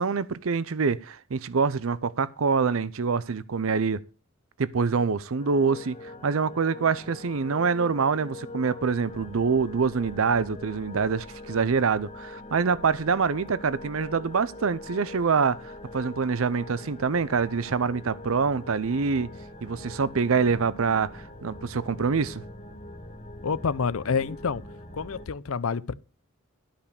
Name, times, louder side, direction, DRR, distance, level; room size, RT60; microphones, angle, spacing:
voice 1, 0.0-4.0 4.6-6.0 6.2-19.3 19.6-22.4, right 5 dB, 70° right, 0.6 m, -25 dB
sound 1, 5.4-25.3, left 2 dB, 30° left, 2.0 m, -43 dB
voice 2, 23.4-24.6 24.9-25.9, left 5 dB, 75° left, 0.6 m, -28 dB
12.5 x 5.7 x 6.6 m
head